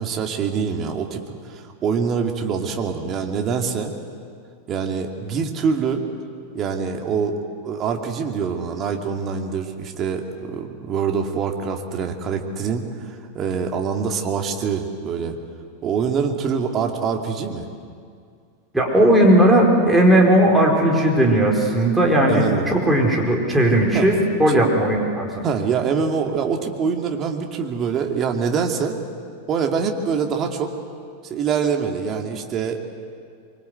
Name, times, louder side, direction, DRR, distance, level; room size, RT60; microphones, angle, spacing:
voice 1, 0.0-3.9 4.7-6.1 6.5-15.4 15.8-17.7 22.3-22.7 23.9-24.1 24.5-24.7 25.4-29.0 29.5-30.7 31.2-32.8, right 6 dB, 30° right, 3 dB, 2.5 m, -24 dB
voice 2, 18.7-25.4, right 1 dB, 5° right, -1 dB, 4.6 m, -17 dB
25.0 x 24.0 x 8.1 m, 2.2 s
figure-of-eight pair, 90°, 0 cm